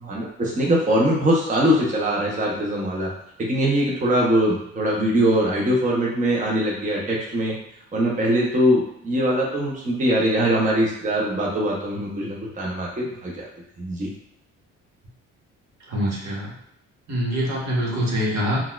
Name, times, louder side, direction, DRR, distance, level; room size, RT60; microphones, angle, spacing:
voice 1, 0.0-3.1 3.4-7.5 7.9-13.5 13.8-14.1, equal, 25° right, -3 dB, 0.7 m, -22 dB
voice 2, 15.9-16.5 17.1-18.6, equal, 65° right, -4 dB, 1.2 m, -24 dB
3.9 x 2.3 x 2.4 m, 0.75 s
cardioid pair, 90°, 30 cm